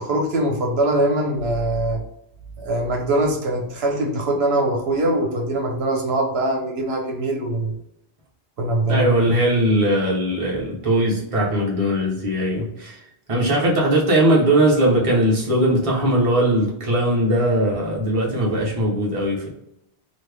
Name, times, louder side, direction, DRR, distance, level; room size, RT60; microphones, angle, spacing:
voice 1, 0.0-2.0 2.6-7.7 8.6-9.1, right 1 dB, 80° right, 0 dB, 0.9 m, -22 dB
voice 2, 8.9-13.0 13.3-19.5, right 1 dB, 35° right, -3 dB, 0.9 m, -19 dB
3.1 x 2.2 x 3.3 m, 0.81 s
omnidirectional pair, 1.1 m